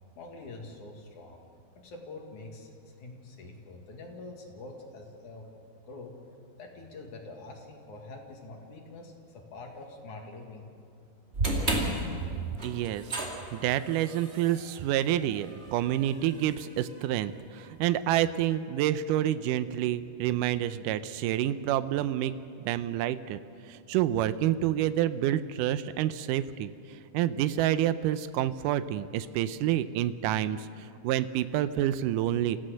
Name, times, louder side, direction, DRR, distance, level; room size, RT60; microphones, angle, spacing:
voice 1, 0.2-1.5 1.8-5.5 5.8-6.1 6.6-10.7, left 2 dB, 55° left, 1 dB, 3.3 m, -45 dB
sound 1, 11.3-17.6, right 2 dB, 20° right, 2.0 m, -34 dB
voice 2, 12.6-13.0 13.5-22.3 22.6-23.4 23.7-26.7 27.1-32.6, right 12 dB, 85° right, 12 dB, 1.8 m, -28 dB
26.5 x 15.5 x 6.5 m, 2.6 s
omnidirectional pair, 4.4 m